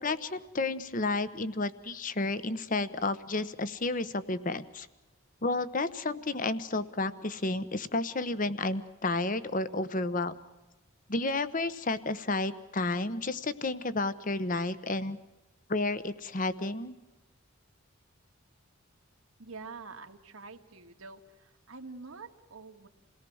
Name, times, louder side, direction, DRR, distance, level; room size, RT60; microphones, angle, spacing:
voice 1, 0.0-4.9 5.4-10.3 11.1-15.2 15.7-16.9, left 2 dB, 40° left, 14 dB, 1.0 m, -31 dB
voice 2, 19.4-22.9, right 4 dB, 80° right, 5 dB, 1.9 m, -46 dB
28.5 x 18.0 x 6.3 m, 1.1 s
head